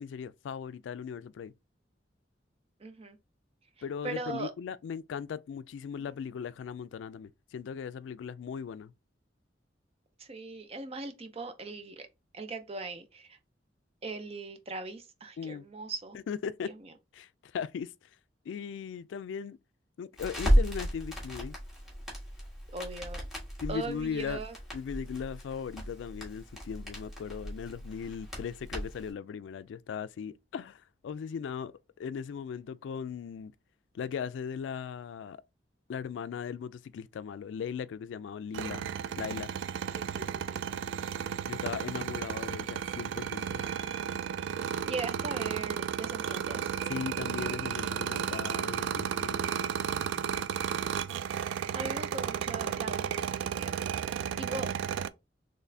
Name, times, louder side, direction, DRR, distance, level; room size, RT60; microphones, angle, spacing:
voice 1, 0.0-1.5 3.8-8.9 15.4-15.6 16.3-16.7 17.1-17.9 18.5-19.6 20.0-21.6 23.6-24.4 24.7-33.5 33.9-35.4 35.9-38.9 39.2-39.5 41.4-43.6 46.9-49.4 49.9-50.2, left 7 dB, 80° left, 0.3 m, -38 dB
voice 2, 2.8-3.2 4.0-4.5 10.2-12.1 12.3-13.4 14.0-16.2 16.6-16.9 22.7-23.2 23.7-24.5 39.9-40.8 44.6-46.7 51.7-53.8 54.1-54.7, right 3 dB, 35° right, 0.6 m, -40 dB
Crackle, 20.2-29.1, equal, ahead, 1.6 m, -33 dB
sound 1, 38.5-55.1, right 8 dB, 85° right, 0.3 m, -33 dB
4.0 x 3.2 x 2.7 m
head